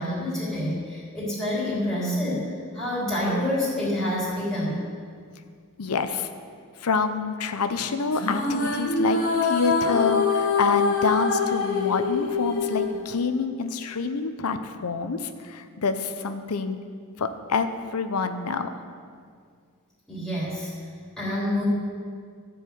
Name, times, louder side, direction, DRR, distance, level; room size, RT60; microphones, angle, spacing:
voice 1, 0.0-2.5 2.7-4.8 20.1-20.7 21.2-21.6, left 1 dB, ahead, -10 dB, 3.5 m, -27 dB
voice 2, 5.8-6.3 6.8-16.8 17.2-18.8, left 4 dB, 85° left, 9 dB, 0.7 m, -27 dB
sound 1, 8.1-13.6, left 4 dB, 65° left, 1.5 m, -25 dB
14.0 x 4.8 x 8.0 m, 2.1 s
head